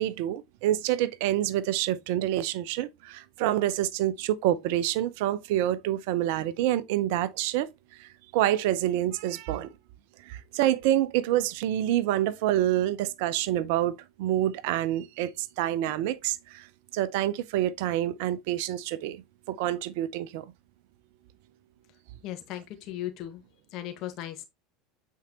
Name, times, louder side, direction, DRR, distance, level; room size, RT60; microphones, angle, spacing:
voice 1, 0.0-7.7 8.0-9.7 10.2-16.7 16.9-20.4, right 13 dB, 65° right, 0.6 m, -27 dB
voice 2, 22.2-23.4 23.7-24.4, left 13 dB, 55° left, 1.5 m, -37 dB
8.3 x 4.6 x 2.9 m
hypercardioid pair, 80°, 0 cm